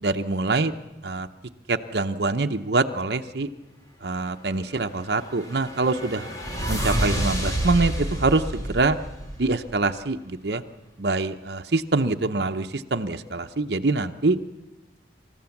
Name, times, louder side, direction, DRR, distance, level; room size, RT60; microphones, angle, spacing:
voice 1, 0.0-0.7 1.0-1.3 1.7-3.5 4.0-6.3 6.7-9.0 9.4-10.6 11.0-14.4, right 3 dB, 65° right, 6 dB, 0.8 m, -24 dB
sound 1, 4.9-9.9, right 1 dB, 20° left, 2.8 m, -29 dB
28.0 x 14.0 x 7.2 m, 1.0 s
head